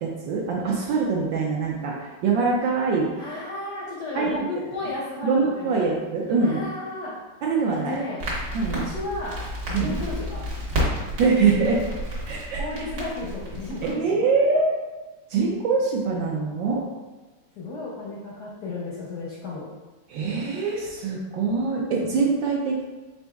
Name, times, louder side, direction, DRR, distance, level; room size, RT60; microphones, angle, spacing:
voice 1, 0.0-3.1 4.1-4.5 5.2-6.6 7.4-8.0 8.5-8.9 9.7-10.0 11.2-11.8 12.2-12.8 13.8-14.7 15.3-16.8 20.1-22.8, right 4 dB, 70° right, -2 dB, 1.2 m, -24 dB
voice 2, 3.2-5.9 6.4-7.1 7.7-8.3 8.7-9.4 9.7-10.4 12.6-14.3 17.6-19.7, left 2 dB, 65° left, -5 dB, 1.0 m, -33 dB
Crackle, 8.2-13.9, equal, 50° right, 1.6 m, -31 dB
5.1 x 4.0 x 2.3 m, 1.2 s
omnidirectional pair, 2.4 m